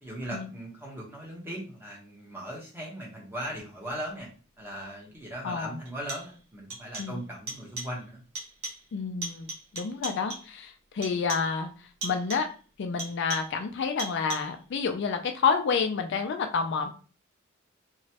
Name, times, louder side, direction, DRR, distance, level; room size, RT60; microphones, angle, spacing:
voice 1, 0.0-4.3 4.6-8.2, right 1 dB, 10° right, -3 dB, 0.9 m, -38 dB
sound 1, 4.8-4.9 5.8-6.4 6.7-7.2 7.5-8.0 8.3-8.9 9.2-10.6 11.0-11.6 12.0-12.6 13.0-13.6 14.0-14.6, right 2 dB, 70° right, 1.2 m, -39 dB
voice 2, 5.4-5.8 7.0-7.2 8.9-9.5 9.7-11.7 12.0-12.5 12.8-16.9, left 5 dB, 60° left, 5 dB, 0.4 m, -29 dB
3.0 x 2.2 x 2.8 m, 0.38 s
head